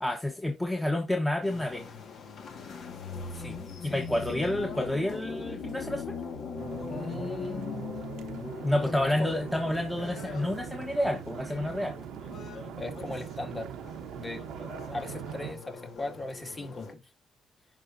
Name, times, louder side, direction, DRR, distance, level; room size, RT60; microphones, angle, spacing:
voice 1, 0.0-1.8 3.8-6.2 8.6-12.0, left 1 dB, 10° left, 1.1 m, -29 dB
sound 1, 1.4-16.9, left 5 dB, 65° left, 1.7 m, -41 dB
voice 2, 3.3-4.5 6.9-8.4 8.8-9.3 12.8-13.7 14.2-14.4 14.9-17.0, left 3 dB, 25° left, 2.0 m, -39 dB
sound 2, 6.6-15.5, right 9 dB, 85° right, 0.9 m, -41 dB
11.0 x 4.0 x 2.7 m
cardioid pair, 90°, 0 cm